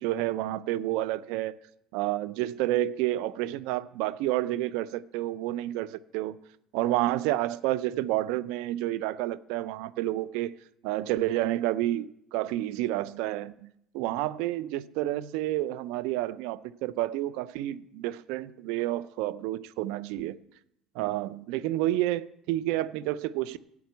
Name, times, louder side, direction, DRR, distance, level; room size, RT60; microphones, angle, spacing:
voice 1, 0.0-1.6 1.9-6.4 6.7-10.5 10.8-13.7 13.9-20.4 21.0-23.6, right 15 dB, 75° right, 0.5 m, -30 dB
11.5 x 8.4 x 8.1 m
supercardioid pair, 80°, 0 cm